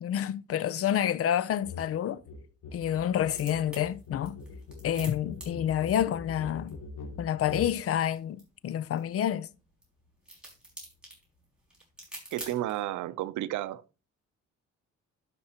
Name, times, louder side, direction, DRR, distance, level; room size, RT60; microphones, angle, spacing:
voice 1, 0.0-2.2 2.7-4.4 4.8-6.8 7.2-9.5, left 10 dB, 50° left, 0.6 m, -28 dB
sound 1, 1.6-1.9 2.1-7.8, left 3 dB, 75° left, 2.6 m, -43 dB
sound 2, 3.1-12.9, right 1 dB, 5° right, 5.3 m, -50 dB
voice 2, 12.3-13.8, right 14 dB, 75° right, 0.6 m, -32 dB
12.0 x 5.9 x 2.9 m
cardioid pair, 90°, 30 cm